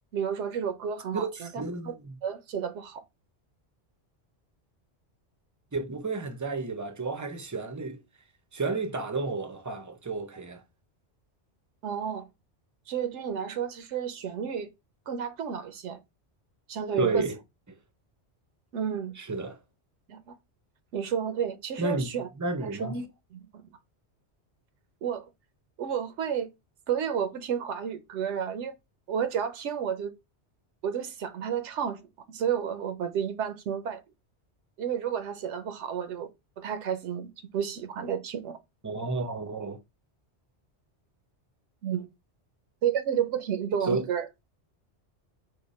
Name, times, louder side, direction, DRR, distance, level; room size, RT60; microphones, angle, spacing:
voice 1, 0.1-1.5 1.8-1.9 2.2-3.0 11.8-12.2 12.9-14.7 15.1-16.0 16.7-17.3 18.7-19.1 20.1-20.3 20.9-22.3 22.6-23.0 23.3-23.5 25.0-25.2 25.8-26.5 26.9-28.7 29.1-30.1 30.8-32.0 32.3-34.0 34.8-36.3 36.6-38.6 41.8-42.1 42.8-44.3, right 8 dB, 85° right, 0.9 m, -31 dB
voice 2, 1.1-2.1 5.7-8.0 8.5-10.6 17.0-17.4 19.2-19.6 21.8-22.1 22.4-23.0 38.8-39.8 43.9-44.0, right 3 dB, 30° right, 0.3 m, -31 dB
4.9 x 2.1 x 4.0 m
omnidirectional pair, 1.2 m